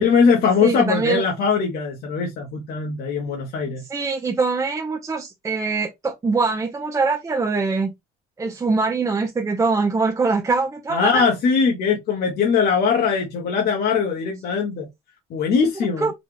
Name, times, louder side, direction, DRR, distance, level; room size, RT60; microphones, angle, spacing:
voice 1, 0.0-3.8 10.9-14.9 15.3-16.1, left 5 dB, 65° left, 1.0 m, -21 dB
voice 2, 0.6-1.2 3.9-7.9 8.4-11.2 16.0-16.1, right 4 dB, 20° right, 0.6 m, -23 dB
4.0 x 2.3 x 3.3 m
cardioid pair, 110°, 17 cm